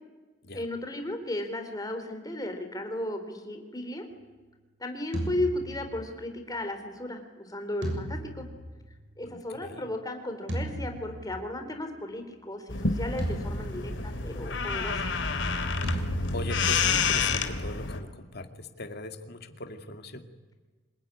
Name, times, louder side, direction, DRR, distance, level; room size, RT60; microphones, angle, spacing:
voice 1, 0.5-4.0 4.8-8.5 9.2-15.1, left 1 dB, 20° left, 6 dB, 3.8 m, -35 dB
sound 1, 5.1-6.3 7.8-9.3 10.5-11.7 13.2-14.4 15.8-17.0, right 1 dB, 80° right, 6.9 m, -36 dB
voice 2, 9.2-9.9 16.3-20.3, left 1 dB, 60° left, 6 dB, 2.3 m, -40 dB
sound 2, 12.7-18.0, left 4 dB, 75° left, 2.6 m, -29 dB
26.0 x 22.0 x 9.9 m, 1.3 s
head